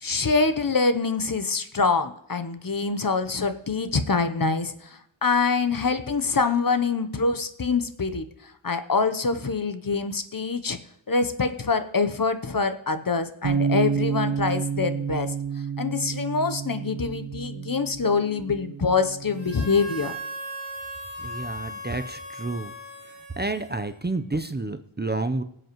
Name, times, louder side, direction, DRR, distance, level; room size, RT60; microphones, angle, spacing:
voice 1, 0.0-10.8 11.1-15.3 15.8-20.1, left 4 dB, 45° left, 10 dB, 0.8 m, -25 dB
Bass guitar, 13.4-19.7, right 6 dB, 65° right, 1.3 m, -29 dB
Harmonica, 19.3-24.2, right 1 dB, 90° left, 4.2 m, -38 dB
voice 2, 21.2-22.7 23.4-25.4, right 2 dB, 20° right, 9 dB, 0.7 m, -30 dB
19.0 x 7.9 x 3.1 m, 0.73 s
wide cardioid pair, 50°, 49 cm